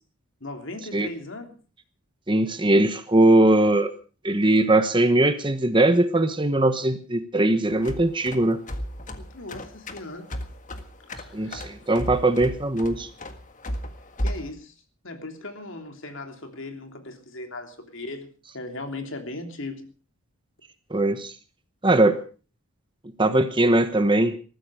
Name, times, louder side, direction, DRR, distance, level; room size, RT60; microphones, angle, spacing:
voice 1, 0.4-1.5 9.3-10.3 11.1-11.7 14.2-14.7 15.0-19.8, left 2 dB, 60° left, 5 dB, 3.2 m, -38 dB
voice 2, 2.3-3.9 4.2-8.6 11.3-13.1 20.9-21.3 21.8-22.2 23.2-24.4, right 1 dB, 20° right, 10 dB, 1.1 m, -20 dB
sound 1, 7.7-14.5, equal, 35° left, 1.7 m, -34 dB
20.5 x 14.5 x 4.9 m, 0.39 s
head